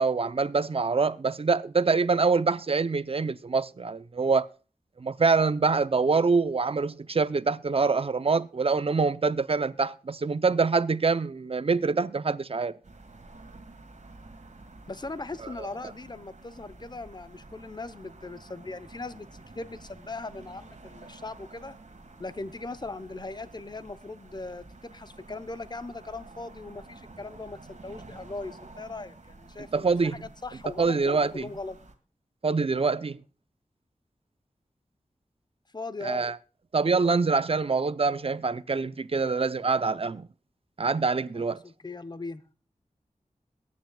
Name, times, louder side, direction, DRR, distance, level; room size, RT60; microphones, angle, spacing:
voice 1, 0.0-4.5 5.0-12.7 29.7-30.2 30.8-31.5 32.4-33.2 36.0-36.3 36.7-40.3 40.8-41.6, right 4 dB, 50° right, 0.6 m, -25 dB
sound 1, 12.8-31.9, right 2 dB, 65° right, 1.8 m, -50 dB
voice 2, 14.9-19.3 19.5-21.7 22.2-31.8 35.7-36.2 41.3-42.5, left 3 dB, 35° left, 0.9 m, -39 dB
22.0 x 9.4 x 2.3 m
wide cardioid pair, 70°, 13 cm